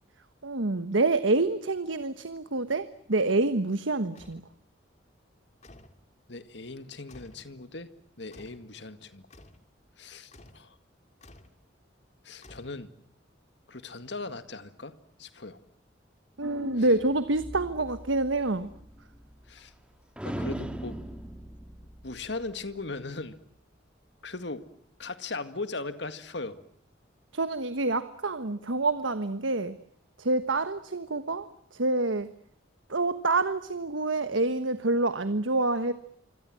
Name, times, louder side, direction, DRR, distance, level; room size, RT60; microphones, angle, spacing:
voice 1, 0.4-4.4 16.4-18.7 27.3-29.8 30.2-32.3 32.9-35.9, right 2 dB, 85° right, 11 dB, 1.3 m, -27 dB
sound 1, 4.2-4.5 5.6-6.0 7.1-7.5 8.3-8.7 9.3-9.7 10.3-10.7 11.2-11.6 12.4-13.1, left 1 dB, 35° left, 2.5 m, -52 dB
voice 2, 6.3-7.9 8.2-9.3 10.0-10.8 12.2-12.9 13.7-14.9 15.2-15.6 19.5-19.7 20.2-21.0 22.0-23.4 24.2-24.6 25.0-26.6, left 3 dB, 65° left, 11 dB, 2.0 m, -38 dB
sound 2, 16.4-19.8 20.2-22.8, right 1 dB, 5° right, 2.3 m, -40 dB
26.0 x 26.0 x 7.6 m, 0.66 s
head